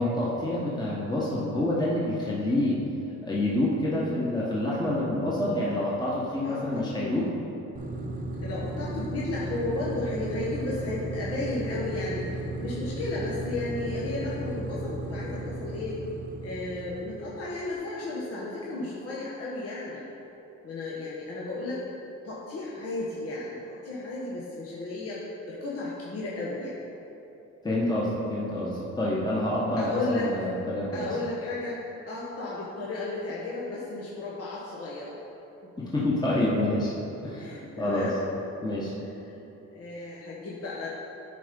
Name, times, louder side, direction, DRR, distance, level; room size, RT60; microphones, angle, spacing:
voice 1, 0.0-2.8 3.2-7.3 27.6-31.1 35.8-36.9 37.2-38.1 38.6-38.9, left 1 dB, 15° left, -6 dB, 1.4 m, -27 dB
voice 2, 3.8-4.2 6.4-7.1 8.4-12.2 12.6-16.0 16.4-20.0 20.6-21.8 22.2-25.2 25.4-26.8 29.8-30.3 30.9-31.8 32.1-35.1 37.3-38.3 39.3-39.4 39.7-40.9, left 2 dB, 50° left, -6 dB, 1.4 m, -34 dB
sound 1, 7.8-17.6, right 1 dB, 25° right, 0.9 m, -35 dB
10.0 x 4.3 x 5.3 m, 3.0 s
cardioid pair, 90°, 30 cm